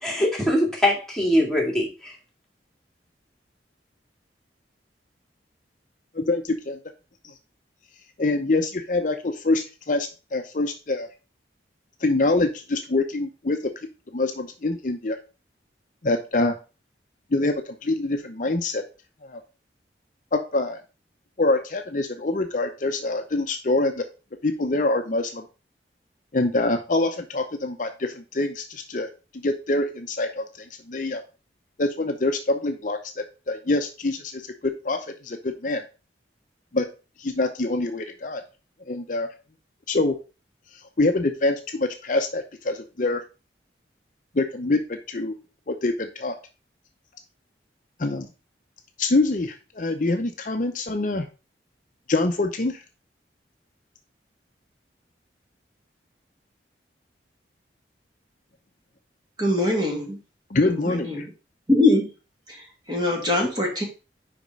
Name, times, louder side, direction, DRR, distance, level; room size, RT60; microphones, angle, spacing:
voice 1, 0.0-2.2, left 1 dB, 5° left, -2 dB, 2.1 m, -22 dB
voice 2, 6.1-6.8 7.2-7.3 8.2-11.1 12.0-13.7 14.1-15.2 16.0-16.5 17.3-18.8 19.2-19.4 20.3-20.8 21.4-24.0 24.4-25.5 26.3-31.2 31.8-35.8 36.7-36.9 37.2-38.4 38.9-39.3 39.9-40.2 41.0-43.2 44.3-45.3 45.7-46.4 48.0-48.3 49.0-51.3 52.1-52.8 60.5-61.2, left 2 dB, 45° left, 5 dB, 0.7 m, -25 dB
voice 3, 59.4-60.2 60.6-61.3 61.7-62.1 62.5-63.8, left 2 dB, 25° right, 0 dB, 2.1 m, -23 dB
5.2 x 5.1 x 5.2 m, 0.32 s
head